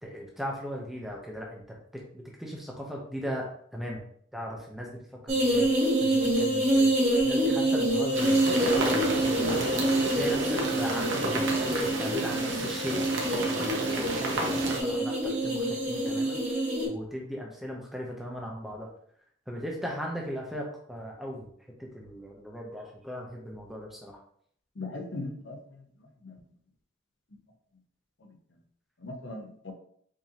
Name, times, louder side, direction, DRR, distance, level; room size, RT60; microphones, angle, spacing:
voice 1, 0.0-1.6 1.9-3.5 3.7-4.0 4.3-4.9 5.2-5.7 6.0-6.9 7.2-9.6 10.1-16.4 16.8-18.9 19.5-21.5 21.8-24.2, equal, ahead, -2 dB, 0.6 m, -38 dB
sound 1, 5.3-16.8, right 1 dB, 35° right, 1.3 m, -26 dB
sound 2, 8.1-14.8, right 2 dB, 70° right, 0.8 m, -31 dB
voice 2, 24.8-25.6 26.2-26.4 29.0-29.7, left 2 dB, 65° left, 2 dB, 0.8 m, -38 dB
4.8 x 2.8 x 2.8 m, 0.62 s
head